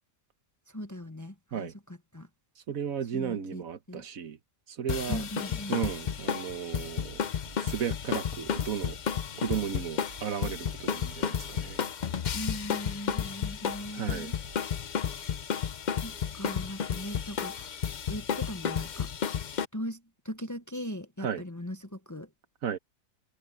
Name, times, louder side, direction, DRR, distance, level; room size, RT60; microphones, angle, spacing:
voice 1, 0.7-2.3 3.1-4.0 5.1-5.8 12.3-14.3 15.9-17.8 18.1-19.1 19.7-22.3, equal, 15° left, 0.8 m, -39 dB
voice 2, 2.7-4.4 4.7-5.2 5.7-7.2 7.6-9.0 9.4-11.9 13.9-14.3 21.2-21.4 22.6-22.8, right 8 dB, 75° right, 1.5 m, -34 dB
sound 1, 4.9-19.7, left 7 dB, 50° left, 0.5 m, -32 dB
sound 2, 6.7-14.6, right 2 dB, 50° right, 3.5 m, -52 dB
omnidirectional pair, 1.5 m